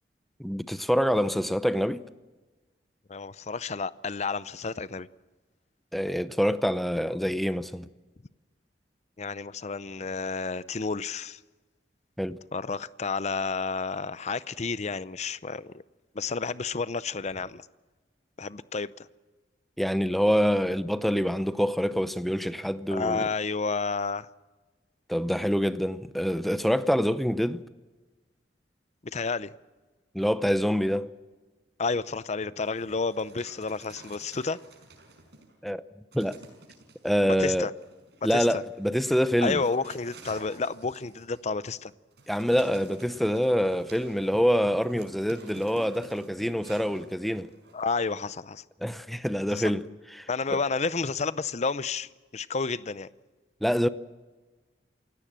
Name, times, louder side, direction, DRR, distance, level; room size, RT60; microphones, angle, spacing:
voice 1, 0.4-2.0 5.9-7.9 12.2-12.4 19.8-23.3 25.1-27.6 30.1-31.1 35.6-35.8 36.1-36.4 37.0-37.7 38.2-39.6 42.3-47.5 48.8-49.8 50.1-50.6 53.6-53.9, equal, ahead, 0.7 m, -26 dB
voice 2, 3.1-5.1 9.2-11.4 12.5-15.7 16.1-17.7 18.4-19.1 22.9-24.3 29.0-29.5 31.8-34.6 37.3-37.7 38.3-38.6 39.4-41.9 47.7-48.6 49.5-49.7 50.3-53.1, left 4 dB, 40° left, 0.6 m, -31 dB
Dog, 32.6-35.5 36.1-37.1 37.8-48.1, right 2 dB, 65° right, 5.2 m, -51 dB
28.0 x 17.0 x 7.5 m
head